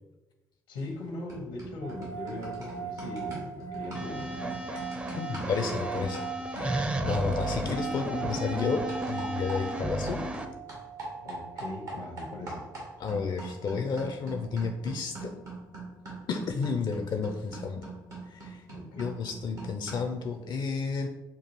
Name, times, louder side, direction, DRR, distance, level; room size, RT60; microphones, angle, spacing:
voice 1, 0.7-4.3 11.2-12.7 18.7-19.1, left 2 dB, 80° left, 1 dB, 0.9 m, -39 dB
sound 1, 0.8-1.0 1.3-10.4 10.7-20.2, right 3 dB, 85° right, 1.5 m, -42 dB
sound 2, 1.8-13.2, right 6 dB, 55° right, 0.6 m, -40 dB
sound 3, 3.9-10.4, right 1 dB, 10° right, 0.4 m, -34 dB
voice 2, 5.1-6.2 6.5-10.2 13.0-15.3 16.3-17.8 18.3-18.6 19.0-21.1, left 5 dB, 45° left, 5 dB, 0.4 m, -32 dB
6.7 x 2.4 x 3.1 m, 1.1 s
hypercardioid pair, 45°, 10 cm